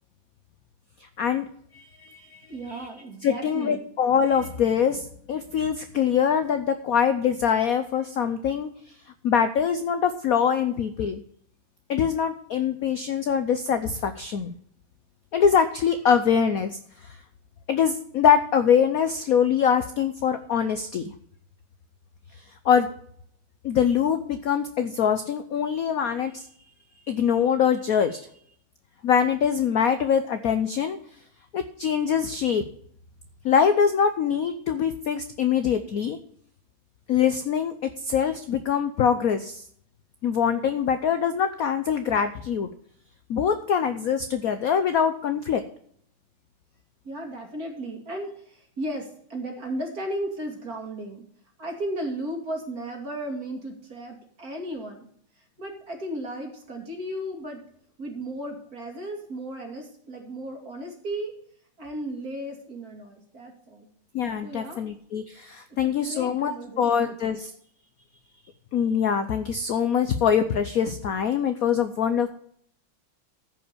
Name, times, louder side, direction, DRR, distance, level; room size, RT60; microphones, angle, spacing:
voice 1, 1.7-2.4 3.2-8.7 9.2-11.2 11.9-14.5 15.3-17.2 17.7-21.0 22.6-22.9 23.6-26.4 27.1-28.3 29.0-31.0 31.5-32.6 33.4-36.2 37.1-37.7 38.0-39.6 40.2-42.7 43.3-45.6 64.1-67.5 68.7-72.3, left 7 dB, 70° left, 10 dB, 0.8 m, -23 dB
voice 2, 2.5-3.9 47.0-51.3 51.6-55.1 55.6-57.6 58.0-61.3 61.8-63.9 64.4-64.8 65.8-67.4, right 1 dB, 40° right, 2 dB, 2.9 m, -35 dB
14.0 x 5.5 x 6.8 m, 0.65 s
omnidirectional pair, 2.4 m